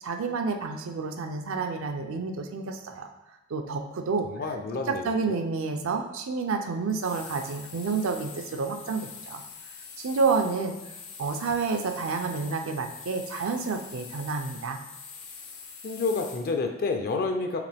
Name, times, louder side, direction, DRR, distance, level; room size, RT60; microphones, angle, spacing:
voice 1, 0.0-3.1 3.5-4.3 4.9-9.4 10.0-10.7 11.2-14.8, right 4 dB, 65° right, 5 dB, 0.5 m, -29 dB
voice 2, 4.2-5.4 15.8-17.6, left 3 dB, 45° left, 4 dB, 0.4 m, -29 dB
sound 1, 6.9-16.5, left 5 dB, 85° left, 0.9 m, -44 dB
4.9 x 3.0 x 3.4 m, 0.98 s
head